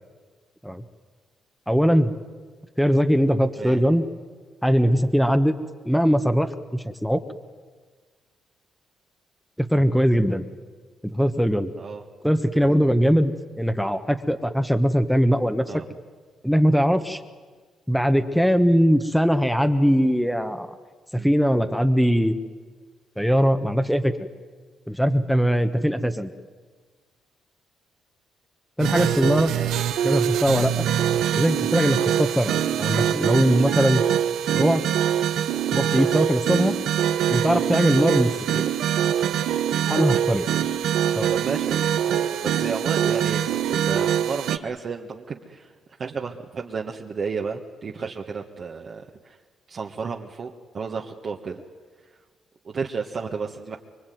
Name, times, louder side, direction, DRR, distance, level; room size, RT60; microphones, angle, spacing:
voice 1, 1.7-2.1 2.8-4.0 4.6-5.5 5.8-7.2 9.6-10.4 11.0-11.7 12.2-15.7 16.4-17.2 17.9-20.7 21.1-22.3 23.2-24.1 24.9-26.3 28.8-29.5 30.0-30.9 31.3-32.5 32.8-34.0 34.5-34.8 35.7-36.8 37.3-38.7 39.9-40.5 41.1-41.3, equal, ahead, 9 dB, 1.3 m, -21 dB
voice 2, 3.6-3.9 11.8-12.0 12.6-12.7 15.7-15.8 21.1-21.3 29.5-29.9 41.3-45.7 46.0-49.4 49.7-51.6 52.6-53.8, right 5 dB, 45° right, 1 dB, 1.5 m, -32 dB
sound 1, 28.8-44.6, right 10 dB, 80° right, 1.1 m, -24 dB
25.0 x 23.0 x 9.4 m, 1.5 s
cardioid pair, 90°, 0 cm